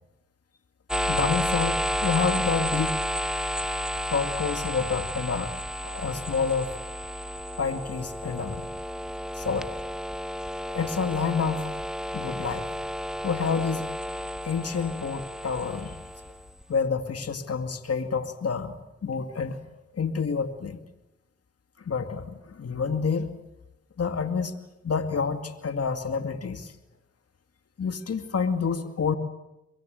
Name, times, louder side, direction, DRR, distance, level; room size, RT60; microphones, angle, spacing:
sound 1, 0.9-16.6, equal, ahead, 1.1 m, -31 dB
voice 1, 1.1-3.0 4.1-5.5 5.8-6.8 7.6-8.7 9.3-9.7 10.7-11.7 12.1-12.7 13.2-13.9 14.4-16.0 16.7-19.6 19.9-20.8 21.8-23.3 24.0-24.6 24.8-26.7 27.8-29.2, left 5 dB, 55° left, 8 dB, 2.3 m, -28 dB
24.0 x 22.5 x 7.8 m, 0.93 s
supercardioid pair, 45°, 29 cm